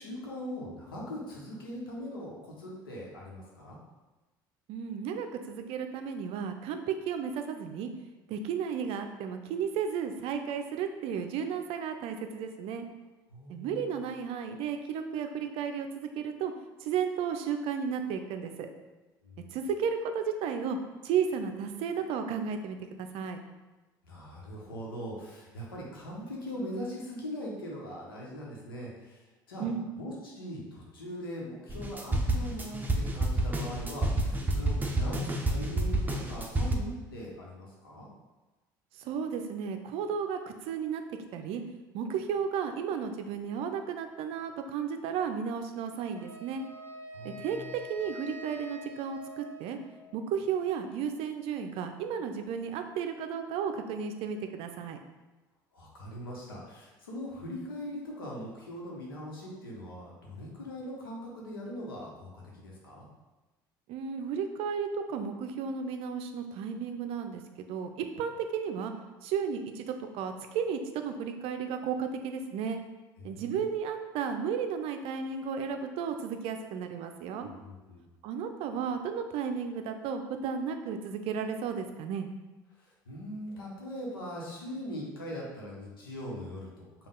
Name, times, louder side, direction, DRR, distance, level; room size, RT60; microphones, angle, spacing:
voice 1, 0.0-3.8 13.3-13.9 19.2-19.5 24.0-29.6 30.0-38.1 47.1-47.7 55.7-63.1 73.2-73.7 77.4-78.0 82.8-87.1, equal, 85° left, -3 dB, 1.0 m, -41 dB
voice 2, 4.7-7.9 8.3-12.9 13.5-16.5 16.8-18.7 19.5-20.8 21.0-23.4 29.6-29.8 38.9-41.0 41.3-41.6 41.9-46.6 47.2-49.8 50.1-55.0 63.9-67.9 68.2-68.9 69.2-72.8 73.2-77.5 78.2-82.3, right 7 dB, 60° right, 7 dB, 0.5 m, -33 dB
sound 1, 31.7-36.8, right 1 dB, 15° right, 0.6 m, -29 dB
Wind instrument woodwind instrument, 46.1-50.3, left 1 dB, 20° left, 1.2 m, -46 dB
5.3 x 2.4 x 3.7 m, 1.2 s
hypercardioid pair, 65°, 11 cm